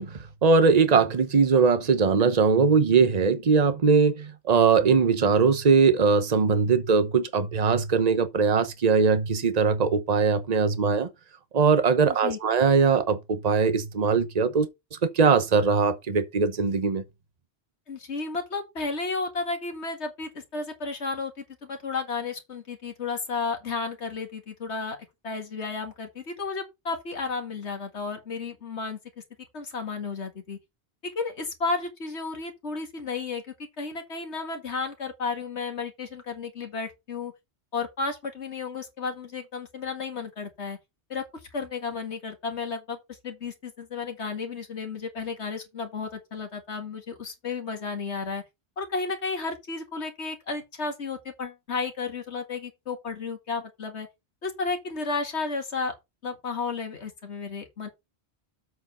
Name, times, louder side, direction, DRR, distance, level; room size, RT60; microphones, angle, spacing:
voice 1, 0.0-11.1 11.5-17.0, right 5 dB, 40° right, 1.0 m, -21 dB
voice 2, 12.0-12.4 17.9-25.0 25.2-29.0 29.5-30.6 31.0-33.4 33.8-37.3 37.7-40.8 41.1-41.2 41.5-43.0 43.2-48.4 48.8-54.1 54.4-55.9 56.2-57.9, left 4 dB, 80° left, 2.2 m, -33 dB
7.9 x 5.0 x 5.4 m
omnidirectional pair, 1.1 m